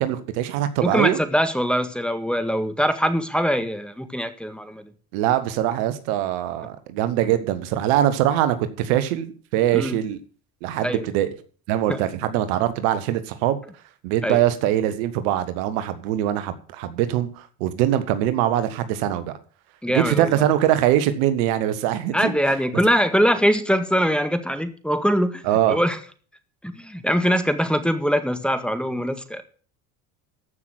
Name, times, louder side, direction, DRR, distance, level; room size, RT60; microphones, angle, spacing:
voice 1, 0.0-1.2 5.1-10.2 10.6-11.3 11.7-13.6 14.0-19.3 19.9-22.3 25.4-25.8, right 12 dB, 80° right, 12 dB, 1.6 m, -22 dB
voice 2, 0.8-4.9 9.7-10.0 10.8-11.0 11.9-12.0 14.2-14.4 19.8-20.4 22.1-25.4 25.7-26.0 26.6-29.4, equal, ahead, 10 dB, 1.8 m, -22 dB
14.5 x 6.1 x 7.8 m, 0.41 s
hypercardioid pair, 75°, 43 cm